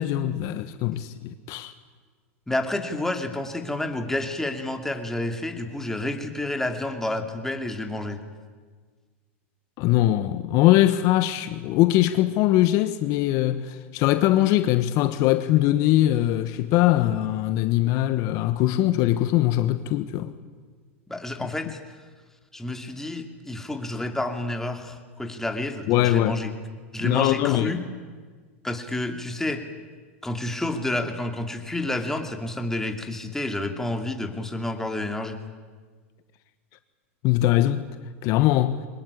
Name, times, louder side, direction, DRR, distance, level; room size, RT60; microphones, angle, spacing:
voice 1, 0.0-1.7 9.8-20.3 25.9-26.4 27.0-27.8 37.2-37.8 38.2-38.9, left 14 dB, 50° left, 1.2 m, -21 dB
voice 2, 2.5-8.2 21.1-21.8 22.5-26.5 26.9-27.8 28.6-29.6 30.2-35.4, left 1 dB, 5° left, 2.7 m, -29 dB
23.0 x 20.0 x 9.8 m
hypercardioid pair, 110°, 7 cm